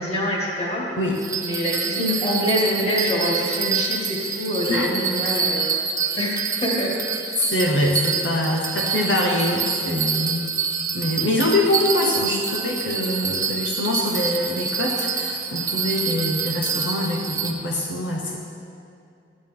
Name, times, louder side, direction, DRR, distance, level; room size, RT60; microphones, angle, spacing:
voice 1, 0.0-0.8 1.4-5.8 6.2-6.9, equal, 35° left, -4 dB, 2.3 m, -25 dB
Bell, 1.1-17.5, right 5 dB, 20° right, 0.6 m, -27 dB
voice 2, 7.4-10.5 10.9-18.4, left 1 dB, 85° left, 0 dB, 1.0 m, -24 dB
12.5 x 9.6 x 3.8 m, 2.5 s
head